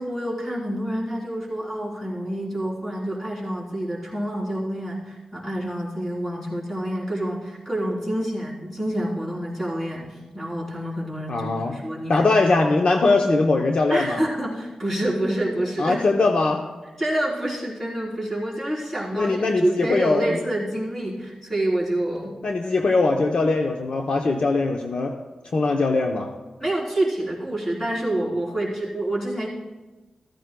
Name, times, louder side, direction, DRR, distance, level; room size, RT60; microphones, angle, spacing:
voice 1, 0.0-12.2 13.9-16.0 17.0-22.4 26.6-29.5, right 1 dB, 15° left, -5 dB, 3.4 m, -27 dB
voice 2, 11.3-11.8 12.1-14.2 15.8-16.6 19.1-20.4 22.4-25.2 25.5-26.3, left 3 dB, 60° left, 2 dB, 0.7 m, -21 dB
14.0 x 14.0 x 2.2 m, 1.2 s
wide cardioid pair, 120°, 2 cm